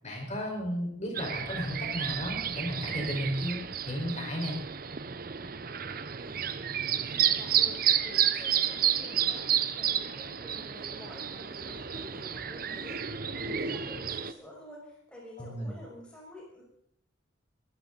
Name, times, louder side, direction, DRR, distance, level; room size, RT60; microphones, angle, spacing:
voice 1, 0.0-4.6 15.4-15.7, equal, 35° left, 0 dB, 4.9 m, -34 dB
sound 1, 1.1-14.3, right 9 dB, 45° right, 0.7 m, -31 dB
voice 2, 6.1-7.8 8.0-16.6, left 1 dB, 5° left, -4 dB, 6.0 m, -49 dB
23.0 x 13.5 x 4.0 m, 0.70 s
head